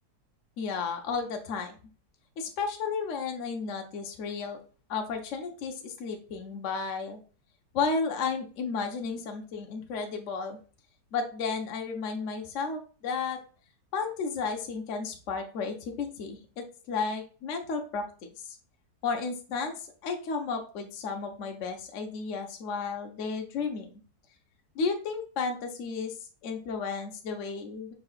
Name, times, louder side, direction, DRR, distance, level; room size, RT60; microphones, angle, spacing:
voice 1, 0.6-1.7 2.4-4.6 4.9-7.2 7.7-10.6 11.1-13.4 13.9-18.0 18.4-18.6 19.0-23.9 24.7-27.9, left 5 dB, 60° left, 3 dB, 0.8 m, -33 dB
5.1 x 3.8 x 2.3 m, 0.37 s
omnidirectional pair, 1.9 m